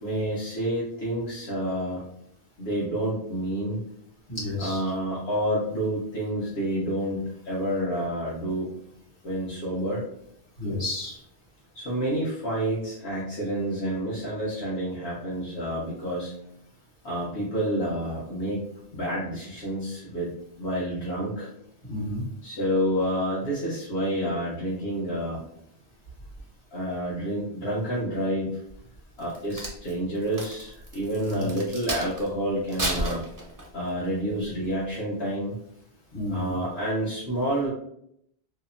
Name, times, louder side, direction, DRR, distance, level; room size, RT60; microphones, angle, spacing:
voice 1, 0.0-2.0 2.6-3.8 4.6-8.7 9.2-10.0 11.7-16.3 17.0-18.6 18.9-20.3 20.6-21.5 22.4-25.4 26.7-28.6 29.2-33.2 33.7-35.6 36.3-37.7, right 1 dB, 75° left, -8 dB, 1.0 m, -29 dB
voice 2, 4.3-4.8 10.6-11.2 21.9-22.2 31.3-31.5 36.1-36.6, left 1 dB, 60° left, -4 dB, 1.3 m, -31 dB
Crack, 29.2-32.3 32.7-33.9 34.4-34.7, right 1 dB, 30° right, 0.4 m, -32 dB
2.8 x 2.0 x 2.4 m, 0.72 s
omnidirectional pair, 1.1 m